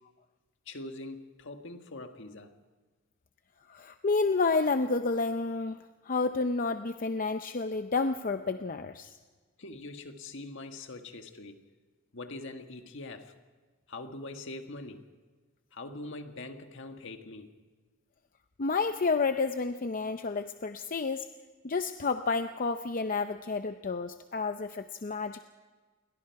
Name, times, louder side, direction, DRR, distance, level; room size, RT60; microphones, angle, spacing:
voice 1, 0.7-2.6 9.6-11.6 12.1-13.3 13.9-15.0 15.7-17.5, left 2 dB, 65° left, 1.8 m, -43 dB
voice 2, 3.7-9.1 18.6-21.3 21.6-25.4, left 4 dB, 45° left, 0.6 m, -30 dB
29.5 x 22.5 x 4.8 m
head